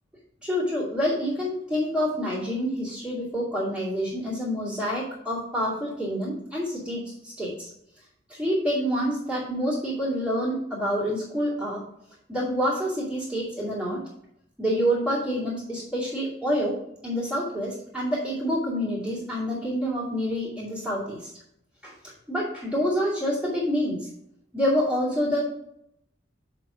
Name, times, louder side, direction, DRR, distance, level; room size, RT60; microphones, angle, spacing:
voice 1, 0.4-7.7 8.3-11.8 12.3-14.0 14.6-16.8 17.0-21.3 21.8-24.1 24.5-25.4, equal, 5° right, -11 dB, 2.5 m, -27 dB
6.6 x 4.7 x 6.0 m, 0.76 s
head